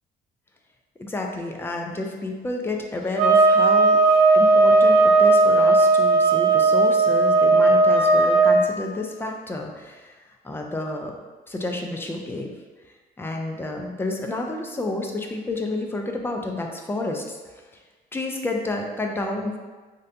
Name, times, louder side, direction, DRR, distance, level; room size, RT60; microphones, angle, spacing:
voice 1, 1.0-4.0 4.3-10.2 10.4-11.2 11.5-12.5 13.2-17.4 18.1-19.6, left 2 dB, 15° left, 2 dB, 0.4 m, -30 dB
sound 1, 3.2-8.6, right 3 dB, 75° right, 0.6 m, -16 dB
3.2 x 2.6 x 2.7 m, 1.3 s
cardioid pair, 110°, 17 cm